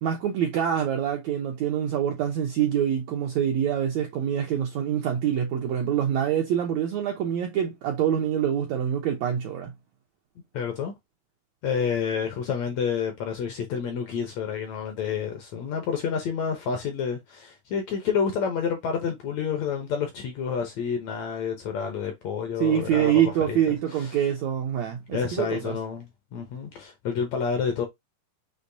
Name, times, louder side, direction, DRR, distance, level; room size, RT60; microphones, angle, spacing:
voice 1, 0.0-9.7 22.6-25.8, right 9 dB, 80° right, 1.6 m, -25 dB
voice 2, 10.5-10.9 11.6-23.6 23.9-24.1 25.1-27.9, left 6 dB, 70° left, 1.7 m, -29 dB
6.5 x 3.0 x 2.6 m
omnidirectional pair, 4.0 m